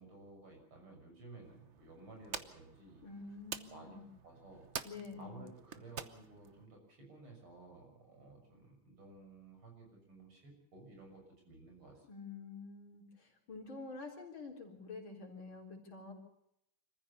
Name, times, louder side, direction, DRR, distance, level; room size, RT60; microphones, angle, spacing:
voice 1, 0.0-3.0 3.7-4.0 4.2-4.7 5.2-12.1, right 2 dB, 80° right, 1 dB, 7.3 m, -55 dB
sound 1, 1.4-6.7, right 7 dB, 45° right, 0.9 m, -48 dB
voice 2, 3.0-4.0 4.8-5.4 12.1-16.1, left 4 dB, 65° left, 0 dB, 4.7 m, -48 dB
26.5 x 15.0 x 7.0 m, 0.78 s
omnidirectional pair, 2.3 m